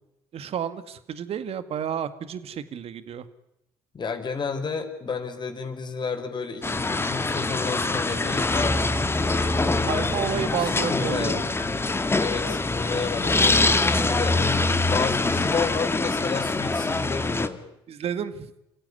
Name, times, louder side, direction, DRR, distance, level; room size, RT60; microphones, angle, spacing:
voice 1, 0.3-3.3 9.8-11.4 17.9-18.5, right 8 dB, 50° right, 13 dB, 2.1 m, -31 dB
voice 2, 3.9-10.1 10.9-11.4 12.2-14.5 14.9-17.6, left 5 dB, 35° left, 5 dB, 5.0 m, -31 dB
sound 1, 6.6-17.5, left 3 dB, 20° left, 2.2 m, -24 dB
29.0 x 16.0 x 9.9 m, 0.89 s
hypercardioid pair, 55°, 13 cm